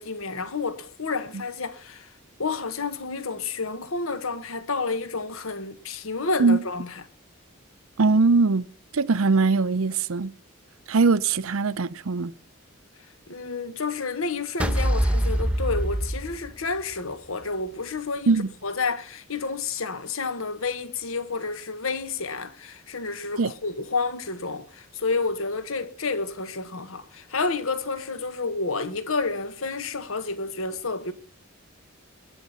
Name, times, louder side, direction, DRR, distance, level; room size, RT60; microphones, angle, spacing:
voice 1, 0.0-2.1 2.4-6.9 13.3-18.3 18.6-31.1, left 4 dB, 75° left, 1.5 m, -30 dB
voice 2, 8.0-8.7 8.9-10.3 10.9-12.3 18.3-18.5 23.4-23.5, right 4 dB, 75° right, 0.6 m, -21 dB
sound 1, 14.6-16.9, right 1 dB, 5° right, 1.1 m, -24 dB
20.5 x 10.0 x 5.6 m
head